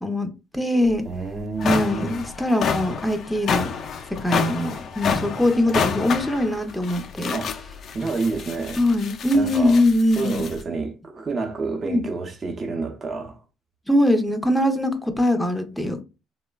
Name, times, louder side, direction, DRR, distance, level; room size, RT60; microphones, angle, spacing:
voice 1, 0.0-1.0 1.6-3.7 4.2-7.4 8.8-10.4 11.8-12.0 13.9-16.0, left 1 dB, ahead, 0.5 m, -22 dB
sound 1, 0.9-1.0 1.4-10.6, left 6 dB, 55° left, 0.3 m, -29 dB
voice 2, 1.0-2.2 7.3-7.6 7.9-8.8 9.3-9.8 10.2-13.4, right 4 dB, 35° right, 0.7 m, -29 dB
3.2 x 2.0 x 2.2 m
supercardioid pair, 85°, 0 cm